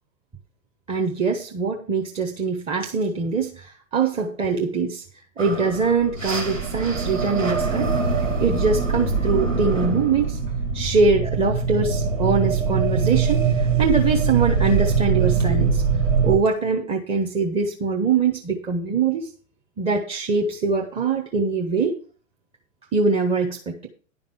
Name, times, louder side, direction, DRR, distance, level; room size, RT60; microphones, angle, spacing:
voice 1, 0.9-5.0 5.4-7.9 8.4-10.4 10.7-15.8 16.2-19.3 19.8-21.9 22.9-23.9, right 4 dB, 15° right, 1 dB, 1.0 m, -23 dB
sound 1, 5.4-16.4, right 5 dB, 75° right, 2.4 m, -23 dB
10.5 x 5.2 x 7.0 m, 0.41 s
figure-of-eight pair, 105°, 39 cm